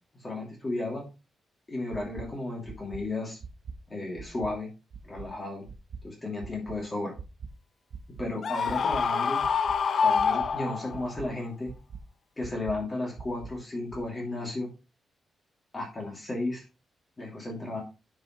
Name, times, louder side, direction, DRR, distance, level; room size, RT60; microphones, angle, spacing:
voice 1, 0.1-1.1 1.7-3.4 3.9-4.7 5.0-5.7 6.0-7.1 8.2-9.4 10.0-11.7 12.4-14.7 15.7-16.6 17.2-17.8, left 2 dB, 20° left, -1 dB, 2.5 m, -34 dB
sound 1, 1.9-2.2 2.7-3.0 3.4-3.7 4.2-4.5 4.9-5.3 5.7-6.0 6.4-6.8 7.2-7.5 7.9-8.3 8.7-9.0 9.4-9.8 10.2-10.5 10.9-11.3 11.7-12.0 12.4-12.7 13.2-13.5 13.9-14.0, right 6 dB, 50° right, 0.9 m, -41 dB
Screaming, 8.4-11.1, left 6 dB, 45° left, 0.5 m, -26 dB
10.0 x 5.5 x 3.0 m, 0.29 s
wide cardioid pair, 175°, 0 cm